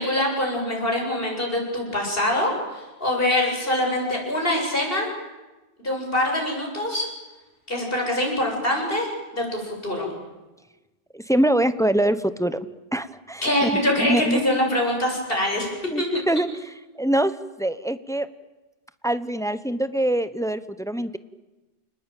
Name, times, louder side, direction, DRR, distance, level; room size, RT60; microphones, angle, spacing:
voice 1, 0.0-5.1 5.8-7.1 7.7-10.1 13.4-16.1, left 1 dB, 65° left, 0 dB, 8.0 m, -24 dB
voice 2, 11.1-12.6 12.9-14.4 15.9-18.3 19.0-21.2, right 1 dB, 5° left, 13 dB, 0.9 m, -24 dB
29.0 x 20.0 x 9.2 m, 1.1 s
omnidirectional pair, 1.0 m